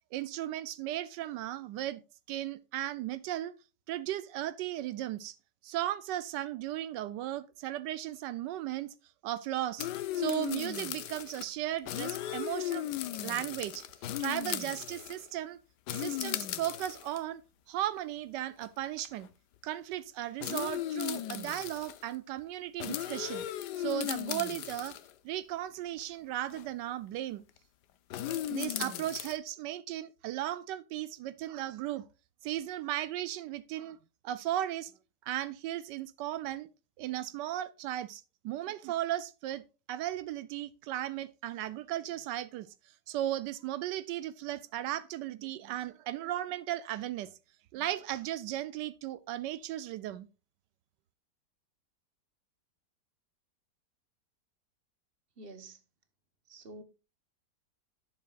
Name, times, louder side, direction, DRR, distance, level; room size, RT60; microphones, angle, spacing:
voice 1, 0.1-2.0 2.3-3.5 3.9-5.4 5.6-8.9 9.2-9.9 10.1-12.9 13.2-13.9 14.2-15.6 15.9-17.4 17.7-19.3 19.6-23.4 23.8-25.0 25.2-27.4 28.5-32.1 32.4-34.0 34.2-34.9 35.2-36.7 37.0-42.7 43.1-47.3 47.7-50.3, right 13 dB, 85° right, 1.2 m, -36 dB
sound 1, 9.8-11.4 11.8-15.3 15.9-17.2 18.0-18.1 18.6-18.7 19.0-19.3 20.4-22.0 22.8-25.1 26.5-26.6 28.1-29.3, left 12 dB, 75° left, 1.3 m, -36 dB
voice 2, 55.4-55.8 56.5-56.8, right 2 dB, 35° right, 1.3 m, -48 dB
11.0 x 7.3 x 2.4 m
omnidirectional pair, 1.8 m